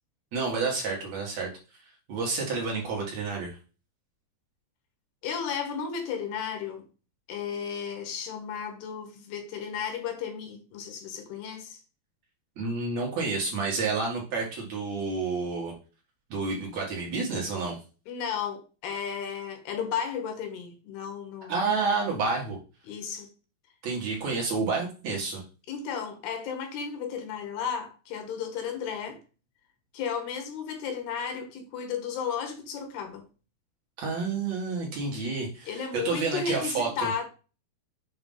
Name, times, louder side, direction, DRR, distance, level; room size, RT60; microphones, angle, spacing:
voice 1, 0.3-1.5 2.1-3.6 12.6-15.7 16.3-17.8 21.5-22.6 23.8-25.4 34.0-37.1, right 4 dB, 50° right, 2.4 m, -29 dB
voice 2, 5.2-6.8 7.3-11.8 18.1-21.7 22.9-23.3 25.7-29.2 29.9-33.2 35.7-37.2, left 7 dB, 70° left, 3.1 m, -34 dB
7.5 x 3.2 x 5.4 m
omnidirectional pair, 4.9 m